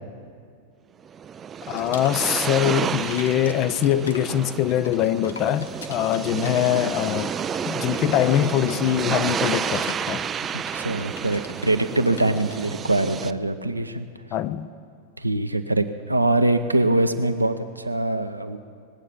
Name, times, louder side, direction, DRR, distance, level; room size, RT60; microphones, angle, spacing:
sound 1, 1.1-13.3, right 7 dB, 25° right, 0.4 m, -30 dB
sound 2, 1.7-2.9 3.1-12.7, left 5 dB, 70° left, 0.8 m, -44 dB
voice 1, 1.7-7.3 7.7-10.2 14.3-14.7, left 11 dB, 35° left, 0.6 m, -23 dB
voice 2, 6.1-6.6 10.5-14.1 15.2-18.6, right 2 dB, 85° right, 0.7 m, -23 dB
19.5 x 8.3 x 8.3 m
figure-of-eight pair, 90°, 0 cm